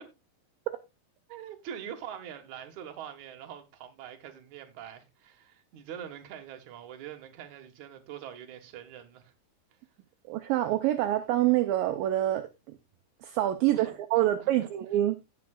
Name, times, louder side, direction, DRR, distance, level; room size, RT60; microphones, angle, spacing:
voice 1, 1.3-9.3 13.7-14.7, right 9 dB, 60° right, 2.6 m, -44 dB
voice 2, 10.3-12.8 13.2-15.1, right 14 dB, 75° right, 2.4 m, -26 dB
16.5 x 5.9 x 2.4 m
omnidirectional pair, 4.3 m